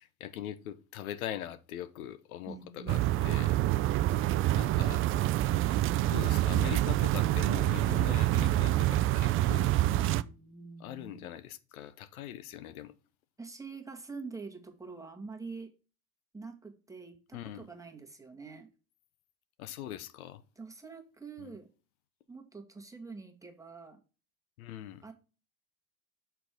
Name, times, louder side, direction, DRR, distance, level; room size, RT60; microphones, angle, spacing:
voice 1, 0.0-3.5 4.5-5.0 6.1-9.8 10.8-12.9 17.3-17.7 19.6-20.4 21.4-21.5 24.6-25.0, left 11 dB, 80° left, 0.8 m, -42 dB
voice 2, 2.5-3.8 10.0-11.3 13.4-15.7 16.3-18.7 20.6-21.7 22.3-24.0 25.0-25.1, right 4 dB, 10° right, 1.5 m, -46 dB
sound 1, 2.9-10.2, right 15 dB, 35° right, 0.4 m, -27 dB
6.0 x 4.7 x 4.9 m
hypercardioid pair, 90°, 42 cm